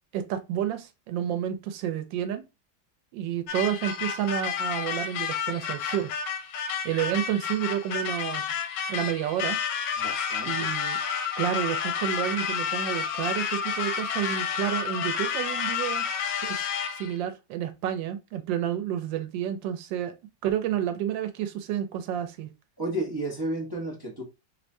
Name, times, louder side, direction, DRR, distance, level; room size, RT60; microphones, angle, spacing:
voice 1, 0.1-2.4 3.1-6.1 6.8-8.4 8.9-9.6 10.4-11.0 11.4-16.1 16.4-20.2 20.4-22.5, right 10 dB, 90° right, 1.3 m, -30 dB
sound 1, 3.5-17.2, left 7 dB, 80° left, 1.2 m, -30 dB
voice 2, 10.0-10.7 22.8-24.2, right 1 dB, 30° right, 0.4 m, -32 dB
3.1 x 2.6 x 3.1 m
omnidirectional pair, 2.0 m